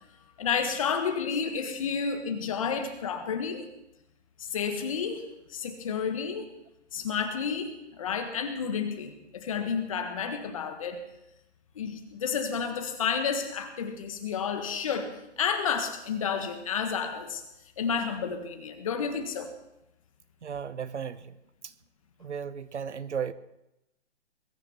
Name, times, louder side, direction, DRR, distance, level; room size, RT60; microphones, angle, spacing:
voice 1, 0.4-3.7 4.4-6.4 6.9-11.0 11.7-17.4 17.8-19.5, left 6 dB, 30° left, 6 dB, 1.6 m, -31 dB
voice 2, 20.4-21.3 21.6-21.7 22.2-23.3, right 7 dB, 75° right, 15 dB, 1.2 m, -35 dB
21.5 x 9.6 x 7.0 m, 0.87 s
hypercardioid pair, 165°, 35 cm